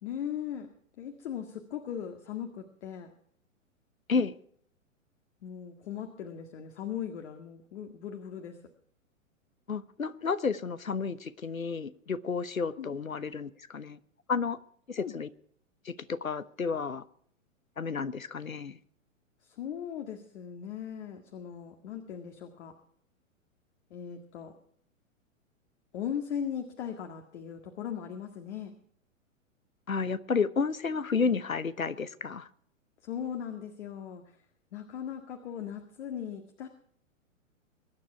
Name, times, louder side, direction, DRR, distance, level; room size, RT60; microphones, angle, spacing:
voice 1, 0.0-0.7 1.0-3.1 5.4-8.6 12.8-12.9 15.0-15.1 19.4-22.8 23.9-24.5 25.9-28.7 33.0-34.4 34.7-36.7, left 8 dB, 55° left, 5 dB, 2.0 m, -38 dB
voice 2, 9.7-14.0 14.3-14.6 14.9-15.3 15.8-17.0 17.8-18.8 29.9-32.5, left 5 dB, 90° left, 16 dB, 1.1 m, -31 dB
23.0 x 9.9 x 4.7 m, 0.64 s
figure-of-eight pair, 115°, 40 cm